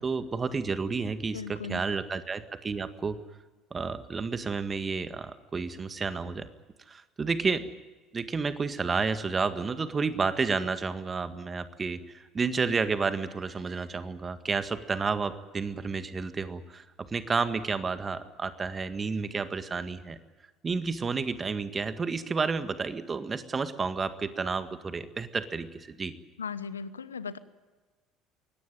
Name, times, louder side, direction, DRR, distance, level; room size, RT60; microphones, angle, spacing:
voice 1, 0.0-3.2 3.7-6.5 6.9-7.7 8.1-20.2 20.6-26.1, right 4 dB, 30° right, 11 dB, 1.8 m, -31 dB
voice 2, 1.3-1.8 26.4-27.4, left 5 dB, 85° left, 16 dB, 0.9 m, -37 dB
23.0 x 18.0 x 9.3 m, 1.3 s
figure-of-eight pair, 60°, 0 cm